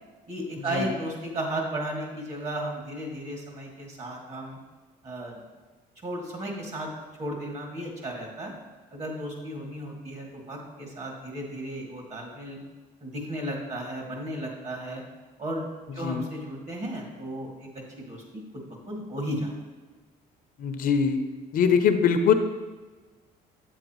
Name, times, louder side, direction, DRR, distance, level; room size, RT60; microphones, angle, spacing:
voice 1, 0.3-4.6 5.0-5.4 6.0-6.9 7.2-8.5 8.9-12.6 13.0-15.0 15.4-15.7 15.9-19.5, right 1 dB, 40° right, 0 dB, 2.3 m, -34 dB
voice 2, 20.6-21.2 21.5-22.3, left 7 dB, 55° left, 8 dB, 0.6 m, -22 dB
8.2 x 7.9 x 3.0 m, 1.3 s
cardioid pair, 110°, 17 cm